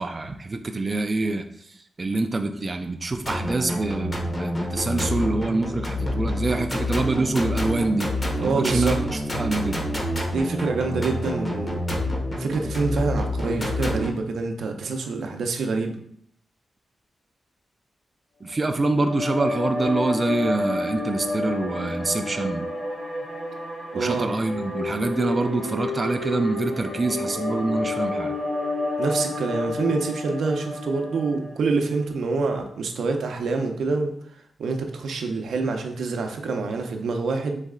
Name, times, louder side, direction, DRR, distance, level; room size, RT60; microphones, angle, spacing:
voice 1, 0.0-8.1 8.4-9.0 9.3-9.8 18.4-22.7 23.9-28.3, right 2 dB, 30° right, 6 dB, 0.3 m, -25 dB
sound 1, 3.2-14.1, left 1 dB, 25° left, 0.9 m, -28 dB
voice 2, 8.4-9.0 10.3-11.8 12.4-16.0 23.9-24.3 29.0-34.1 34.6-37.6, right 4 dB, 80° right, 4 dB, 0.6 m, -26 dB
sound 2, 18.6-31.9, left 2 dB, 85° left, 1.6 m, -30 dB
4.1 x 3.2 x 3.6 m, 0.68 s
wide cardioid pair, 120°, 0 cm